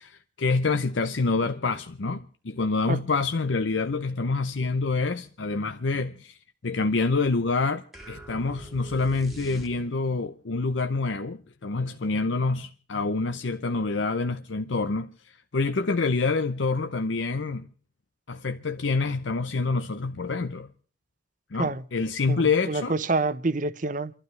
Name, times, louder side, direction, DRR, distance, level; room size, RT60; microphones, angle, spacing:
voice 1, 0.0-6.4 6.6-15.1 15.5-17.7 18.3-20.7 21.5-22.9, left 3 dB, 90° left, 0.7 m, -27 dB
sound 1, 7.9-10.2, right 1 dB, ahead, 1.7 m, -44 dB
voice 2, 22.3-24.1, right 3 dB, 45° right, 0.8 m, -27 dB
29.0 x 12.0 x 3.2 m
head